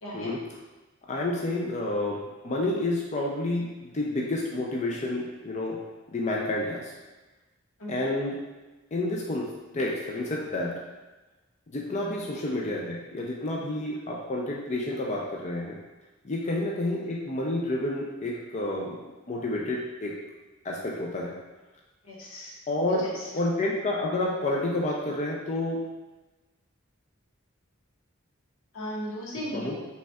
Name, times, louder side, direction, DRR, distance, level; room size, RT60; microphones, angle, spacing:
voice 1, 0.0-0.3 7.8-7.9 22.0-22.5 23.0-23.3 28.7-29.9, equal, 85° left, -5 dB, 1.2 m, -36 dB
voice 2, 1.1-3.7 3.9-5.8 6.1-6.9 7.9-8.4 8.9-9.5 9.7-10.8 11.7-15.8 16.2-19.0 19.3-20.1 20.6-21.4 22.7-23.1 23.3-25.8 29.5-29.8, left 2 dB, 35° left, -2 dB, 0.5 m, -29 dB
5.2 x 3.3 x 2.4 m, 1.1 s
head